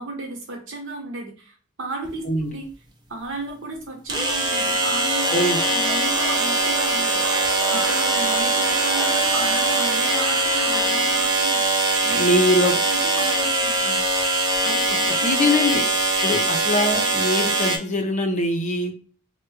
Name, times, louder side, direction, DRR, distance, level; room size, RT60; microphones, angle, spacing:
voice 1, 0.0-2.7 3.1-5.4 5.6-12.3 12.6-14.0 14.6-15.3, right 2 dB, 65° right, 1 dB, 1.0 m, -34 dB
sound 1, 2.0-2.1 4.1-17.8, right 2 dB, 20° right, 0.6 m, -22 dB
Cheering / Crowd, 5.0-11.3, left 1 dB, 5° left, 1.1 m, -34 dB
voice 2, 12.2-12.8 15.2-15.8 16.2-18.9, left 1 dB, 35° left, 4 dB, 0.6 m, -22 dB
3.3 x 2.2 x 3.1 m, 0.41 s
head